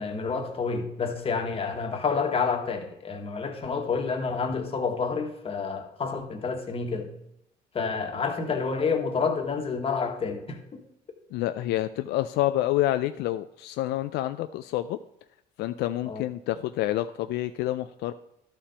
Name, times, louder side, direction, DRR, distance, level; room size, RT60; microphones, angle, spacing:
voice 1, 0.0-7.1 7.7-10.8 16.0-16.2, left 5 dB, 35° left, 1.5 m, -29 dB
voice 2, 11.3-15.0 15.6-18.1, left 14 dB, 80° left, 0.4 m, -28 dB
12.0 x 4.4 x 5.0 m
cardioid pair, 110°, 17 cm